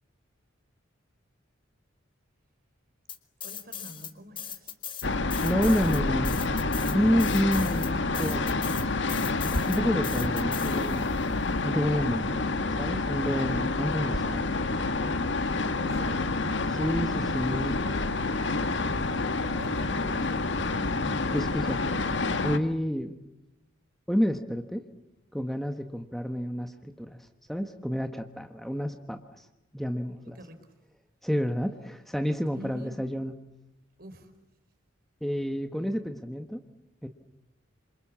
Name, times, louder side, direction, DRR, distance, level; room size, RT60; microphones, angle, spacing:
sound 1, 3.1-4.1 4.4-11.2, left 8 dB, 25° left, 1.8 m, -39 dB
voice 1, 3.4-4.7 15.7-16.3 19.5-20.4 30.2-30.7 32.5-33.0 34.0-34.3, equal, 50° right, 8 dB, 4.4 m, -46 dB
sound 2, 5.0-22.6, left 3 dB, 65° left, 1.7 m, -28 dB
voice 2, 5.4-6.4 6.8-8.5 9.7-11.2 11.6-12.5 12.8-14.5 14.8-14.9 16.7-17.8 21.3-22.0 22.4-23.2 24.1-24.8 25.3-29.5 29.7-30.4 31.2-33.3 35.2-36.6 37.0-37.1, equal, ahead, 6 dB, 1.3 m, -29 dB
28.5 x 27.0 x 7.4 m, 0.95 s
head